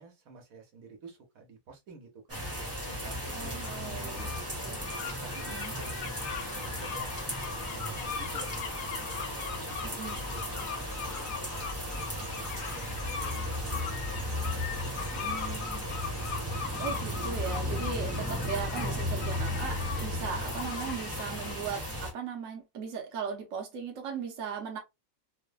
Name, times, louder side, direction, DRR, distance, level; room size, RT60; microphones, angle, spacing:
voice 1, 0.0-2.4 2.8-4.6 5.0-6.2 6.5-7.1 7.4-8.9 9.2-12.0 12.7-13.9 14.4-15.3, right 3 dB, 85° right, 1.3 m, -51 dB
sound 1, 2.3-22.1, equal, 10° right, 0.8 m, -35 dB
sound 2, 3.2-21.5, left 7 dB, 65° left, 0.7 m, -40 dB
voice 2, 3.3-4.3 4.6-4.8 5.3-5.7 9.8-10.2 15.1-15.8 16.8-24.8, right 6 dB, 70° right, 1.1 m, -38 dB
sound 3, 10.8-16.4, right 1 dB, 30° left, 1.0 m, -49 dB
3.1 x 2.1 x 2.2 m
omnidirectional pair, 1.4 m